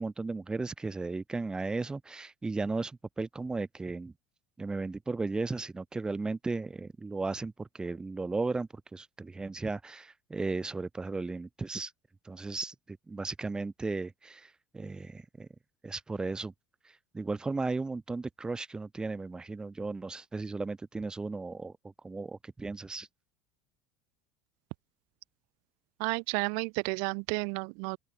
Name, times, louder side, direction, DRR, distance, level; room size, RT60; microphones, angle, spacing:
voice 1, 0.0-4.1 4.6-11.9 12.2-15.5 15.8-16.5 16.8-23.1, right 3 dB, 10° right, 1.2 m, -35 dB
voice 2, 26.0-28.0, right 40 dB or more, 60° right, 1.2 m, -32 dB
open air
cardioid pair, 175°, 9 cm